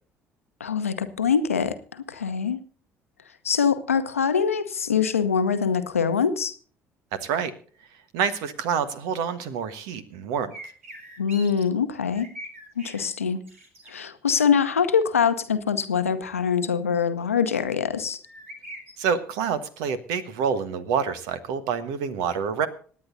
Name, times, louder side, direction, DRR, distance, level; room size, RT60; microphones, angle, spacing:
voice 1, 0.6-2.6 3.4-6.5 11.2-12.3 12.8-13.4 13.9-18.2, left 6 dB, 85° left, 10 dB, 0.9 m, -24 dB
voice 2, 7.1-7.5 8.1-10.5 19.0-22.7, right 7 dB, 60° right, 13 dB, 1.3 m, -27 dB
sound 1, 10.5-11.6 12.0-13.1 13.4-13.9 18.2-19.1, right 1 dB, 80° right, 2.3 m, -42 dB
26.0 x 9.6 x 2.7 m, 0.44 s
figure-of-eight pair, 55°, 7 cm